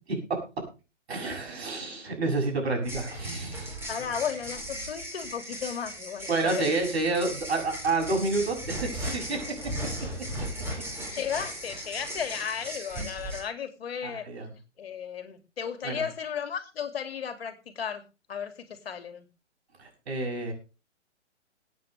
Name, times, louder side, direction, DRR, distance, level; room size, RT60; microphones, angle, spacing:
voice 1, 1.1-3.8 6.3-9.4 14.0-14.5 15.8-16.0 19.8-20.5, right 3 dB, 60° right, 6.9 m, -29 dB
sound 1, 2.8-13.4, equal, 5° right, 5.0 m, -37 dB
voice 2, 3.9-6.7 11.1-14.3 14.8-18.0 18.3-19.3, left 7 dB, 55° left, 2.6 m, -34 dB
22.5 x 9.1 x 3.3 m
figure-of-eight pair, 125°, 36 cm